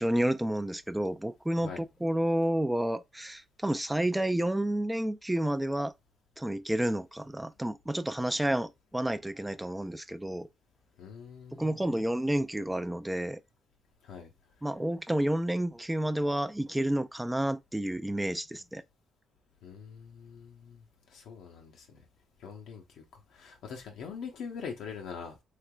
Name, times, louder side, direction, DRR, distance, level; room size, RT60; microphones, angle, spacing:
voice 1, 0.0-5.9 6.4-10.5 11.5-13.4 14.6-18.8, right 1 dB, 10° right, 0.3 m, -30 dB
voice 2, 11.0-12.0 14.0-14.3 19.6-20.8 21.1-22.0 22.4-23.0 23.3-25.4, left 6 dB, 80° left, 0.7 m, -43 dB
3.2 x 2.9 x 2.2 m
cardioid pair, 90°, 0 cm